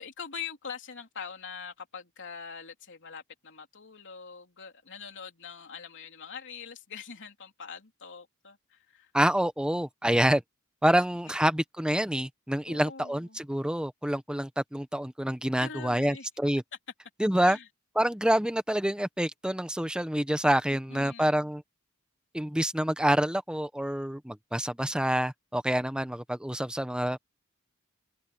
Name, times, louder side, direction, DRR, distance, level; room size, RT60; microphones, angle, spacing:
voice 1, 0.0-9.1 12.7-13.4 15.6-16.3 17.4-17.7 20.9-21.3, left 6 dB, 60° left, 3.4 m, -43 dB
voice 2, 9.1-10.4 10.8-16.6 17.2-17.6 18.0-21.6 22.3-27.2, right 1 dB, 5° right, 0.9 m, -27 dB
open air
head